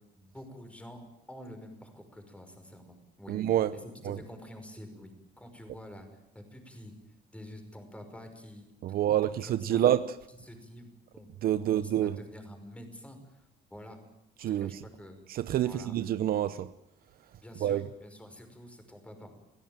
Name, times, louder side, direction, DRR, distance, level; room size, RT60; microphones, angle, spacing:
voice 1, 0.1-1.0 1.3-3.4 3.7-6.9 7.3-9.8 10.4-11.3 11.6-14.0 14.5-15.2 15.6-15.9 17.4-19.3, left 1 dB, 5° left, 5.5 m, -48 dB
voice 2, 3.3-3.7 4.0-4.2 8.8-10.0 11.4-12.2 14.4-14.8 15.3-16.7 17.6-17.9, right 11 dB, 60° right, 0.8 m, -27 dB
28.0 x 16.5 x 9.1 m
cardioid pair, 110°, 17 cm